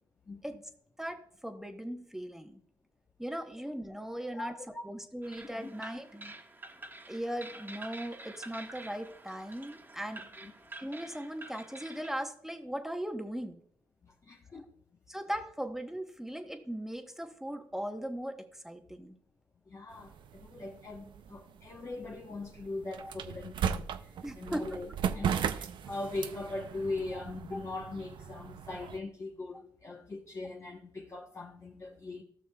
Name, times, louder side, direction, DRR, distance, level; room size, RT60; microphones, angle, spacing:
voice 1, 1.0-2.6 3.2-4.5 4.8-6.3 7.1-10.2 10.8-13.6 15.1-19.2 23.0-23.1 24.2-24.8 27.1-27.2, equal, 5° right, 1.0 m, -38 dB
voice 2, 4.4-4.8 10.4-10.5 14.0-14.7 19.7-24.9 25.1-32.2, left 2 dB, 35° left, 1.0 m, -40 dB
sound 1, 5.2-12.1, right 2 dB, 25° right, 1.2 m, -48 dB
sound 2, 19.9-29.0, right 8 dB, 70° right, 0.5 m, -37 dB
14.5 x 6.4 x 2.3 m
cardioid pair, 70°, 8 cm